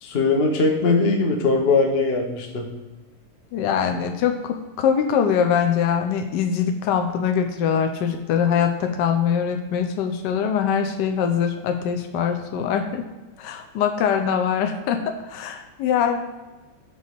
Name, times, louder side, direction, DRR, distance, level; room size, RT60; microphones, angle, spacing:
voice 1, 0.0-2.7, left 3 dB, 50° left, 2 dB, 0.7 m, -20 dB
voice 2, 3.5-13.1 13.4-16.2, left 7 dB, 75° left, 6 dB, 1.0 m, -23 dB
8.1 x 3.9 x 6.8 m, 1.1 s
omnidirectional pair, 2.4 m